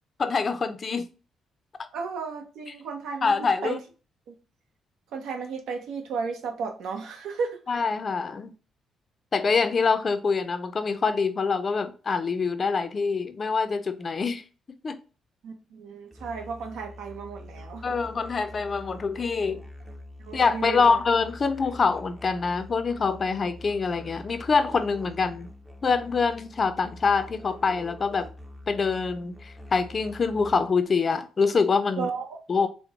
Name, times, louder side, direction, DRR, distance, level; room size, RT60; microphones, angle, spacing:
voice 1, 0.2-1.0 3.2-3.8 7.7-8.5 9.3-14.4 14.8-15.0 17.8-19.6 20.3-25.5 25.8-28.3 28.7-32.1 32.5-32.7, left 4 dB, 40° left, 0.4 m, -25 dB
voice 2, 1.9-3.8 4.3-4.4 5.1-7.6 15.4-18.0 20.2-21.0 32.0-32.4, right 5 dB, 80° right, 0.7 m, -34 dB
Musical instrument, 16.1-30.9, left 1 dB, 10° right, 0.5 m, -45 dB
3.7 x 2.1 x 3.4 m
cardioid pair, 90°, 0 cm